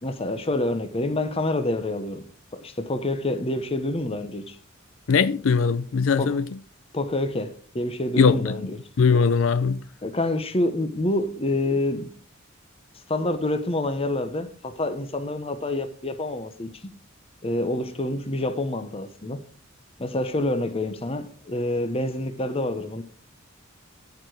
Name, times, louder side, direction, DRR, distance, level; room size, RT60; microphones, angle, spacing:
voice 1, 0.0-2.2 2.5-4.6 6.2-6.4 6.9-8.8 10.0-12.1 13.1-16.7 17.4-19.5 20.0-23.0, left 1 dB, 30° left, 0.9 m, -27 dB
voice 2, 5.1-6.4 8.2-8.5 9.0-9.8, left 5 dB, 75° left, 0.5 m, -20 dB
13.5 x 4.8 x 5.0 m
head